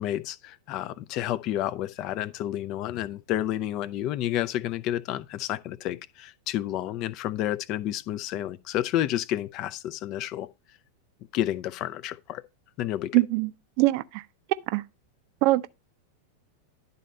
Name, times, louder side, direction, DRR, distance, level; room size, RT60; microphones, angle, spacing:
voice 1, 0.0-10.5 11.3-12.4 12.8-13.2, left 12 dB, 40° left, 0.5 m, -30 dB
voice 2, 13.1-13.5 13.8-14.2 14.7-14.8 15.4-15.7, right 19 dB, 45° right, 0.5 m, -22 dB
11.0 x 4.1 x 5.3 m
figure-of-eight pair, 90°, 0 cm